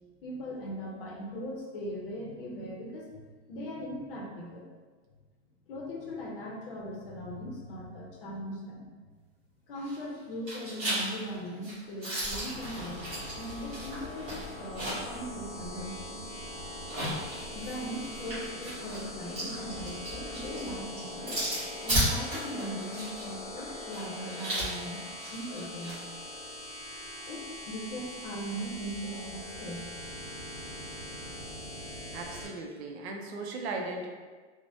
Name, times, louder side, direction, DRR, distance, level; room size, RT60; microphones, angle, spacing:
voice 1, 0.2-4.7 5.7-9.0 9.7-16.2 17.5-21.4 21.8-25.0 25.3-26.0 27.3-29.9, equal, 55° left, -1 dB, 0.6 m, -39 dB
sound 1, 9.7-10.2 10.5-15.2 15.5-15.6 16.7-26.0, right 1 dB, 20° right, 0.9 m, -35 dB
sound 2, 12.5-32.5, left 1 dB, 20° left, 0.9 m, -42 dB
voice 2, 32.1-34.1, right 3 dB, 70° right, 2 dB, 0.5 m, -37 dB
3.3 x 2.1 x 2.6 m, 1.4 s
supercardioid pair, 180°, 34 cm